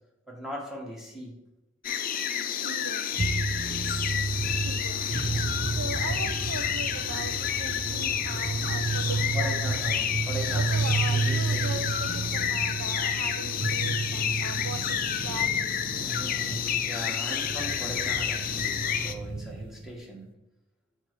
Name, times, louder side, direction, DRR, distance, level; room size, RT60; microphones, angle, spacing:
voice 1, 0.3-1.4 6.0-6.2 9.3-11.7 16.0-20.3, equal, ahead, -2 dB, 1.5 m, -39 dB
sound 1, 1.8-19.1, left 9 dB, 45° left, 0.5 m, -30 dB
voice 2, 2.6-3.3 4.6-10.1 10.5-16.1, right 3 dB, 75° right, 8 dB, 0.7 m, -40 dB
sound 2, 3.2-20.0, right 3 dB, 25° right, 0.4 m, -32 dB
7.4 x 4.5 x 4.7 m, 0.94 s
head